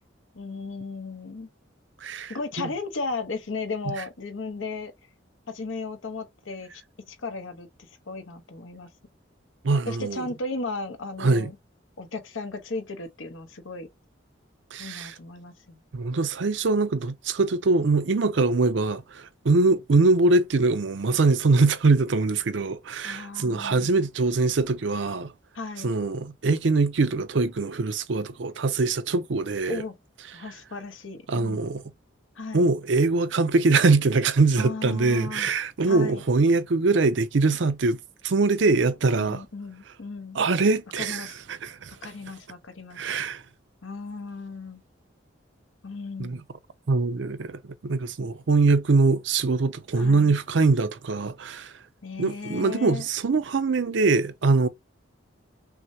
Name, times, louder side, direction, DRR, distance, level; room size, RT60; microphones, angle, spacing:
voice 1, 0.3-1.5 2.3-4.9 5.5-6.8 7.1-8.9 9.9-11.6 12.0-13.9 14.8-15.8 23.0-23.9 25.5-25.9 29.7-30.0 30.3-31.6 32.4-32.7 34.6-35.5 35.9-36.2 39.2-40.4 41.0-41.4 42.0-43.0 43.8-44.8 45.8-46.4 50.0-50.3 52.0-53.0, left 3 dB, 85° left, 0.9 m, -35 dB
voice 2, 2.0-2.3 9.6-10.2 11.2-11.5 14.7-15.1 15.9-25.3 25.8-29.8 31.3-31.8 32.5-38.0 38.2-39.4 40.3-41.9 43.0-43.4 46.2-46.4 46.9-51.7 52.2-54.7, right 3 dB, 70° right, 0.6 m, -23 dB
5.9 x 2.1 x 2.7 m
head